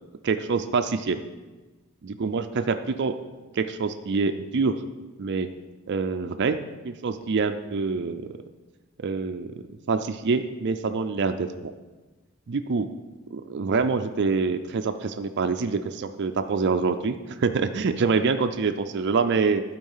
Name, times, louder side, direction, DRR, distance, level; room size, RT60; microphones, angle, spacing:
voice 1, 0.2-1.2 2.0-3.1 3.5-4.7 5.2-5.5 5.9-6.6 6.8-8.3 9.0-9.5 9.9-11.7 12.5-12.9 13.3-19.6, right 4 dB, 50° right, 8 dB, 0.4 m, -25 dB
12.5 x 4.5 x 5.6 m, 1.2 s
head